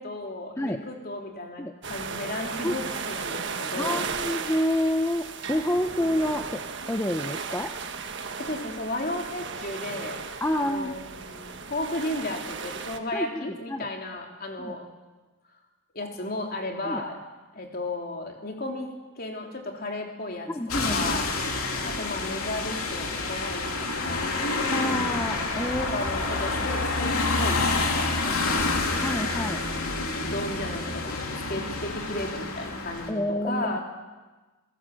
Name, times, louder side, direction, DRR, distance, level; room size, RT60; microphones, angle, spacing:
voice 1, 0.0-4.1 8.4-10.2 10.5-14.8 15.9-17.2 17.5-20.5 20.9-21.3 21.8-24.3 25.8-27.7 28.2-28.7 29.9-33.8, left 2 dB, 45° left, 1 dB, 3.4 m, -34 dB
sound 1, 1.8-13.0, right 5 dB, 55° right, 1.5 m, -35 dB
voice 2, 3.8-7.7 10.4-11.0 13.1-13.9 14.6-14.8 16.8-17.0 20.5-21.2 24.3-26.0 29.0-29.6 33.1-33.8, left 1 dB, 10° left, 5 dB, 0.7 m, -28 dB
sound 2, 20.7-33.1, left 3 dB, 85° left, 3.2 m, -28 dB
28.5 x 17.0 x 7.8 m, 1.2 s
head